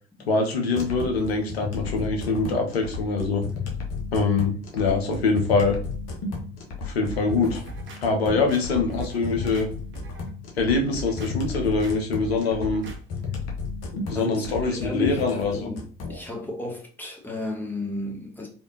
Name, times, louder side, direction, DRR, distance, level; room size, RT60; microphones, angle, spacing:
voice 1, 0.3-3.4 4.1-5.8 6.8-7.6 8.0-9.7 10.6-12.8 13.9-15.7, left 3 dB, 80° left, 0.7 m, -24 dB
sound 1, 0.8-16.2, left 4 dB, 55° left, 1.0 m, -33 dB
sound 2, 7.0-8.0 8.5-9.7 9.9-10.3 10.8-11.3 11.8-11.9 12.2-13.0 13.3-13.5, right 1 dB, 40° right, 0.8 m, -40 dB
voice 2, 14.1-15.2 15.5-15.8 16.1-18.5, left 2 dB, 5° left, 0.9 m, -33 dB
3.3 x 2.5 x 2.6 m
figure-of-eight pair, 55°, 31 cm